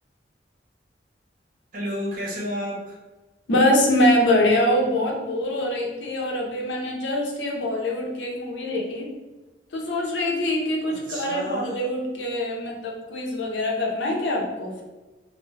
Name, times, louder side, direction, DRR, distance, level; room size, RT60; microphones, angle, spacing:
voice 1, 1.7-3.0 10.9-11.8, equal, 50° right, -4 dB, 0.8 m, -31 dB
voice 2, 3.5-9.1 9.7-14.8, left 1 dB, 85° left, 0 dB, 0.6 m, -24 dB
2.1 x 2.1 x 3.2 m, 1.2 s
head